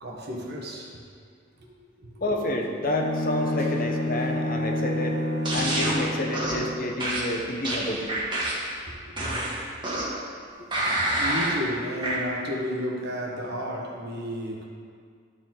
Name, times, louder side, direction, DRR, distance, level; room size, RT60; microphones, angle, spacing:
voice 1, 0.0-1.0 1.6-1.7 2.0-2.1 3.6-3.7 7.4-7.5 8.9-9.1 11.1-14.7, equal, 55° right, -1 dB, 1.2 m, -32 dB
voice 2, 2.2-5.2 5.5-8.1, left 1 dB, 45° left, 2 dB, 0.8 m, -29 dB
Bowed string instrument, 2.8-6.9, left 1 dB, 70° left, 1.1 m, -29 dB
sound 1, 5.4-6.0 6.3-6.6 7.0-8.7 9.2-10.2 10.7-11.6 12.0-12.2, right 1 dB, 25° right, 1.5 m, -27 dB
12.0 x 4.6 x 3.9 m, 2.1 s
head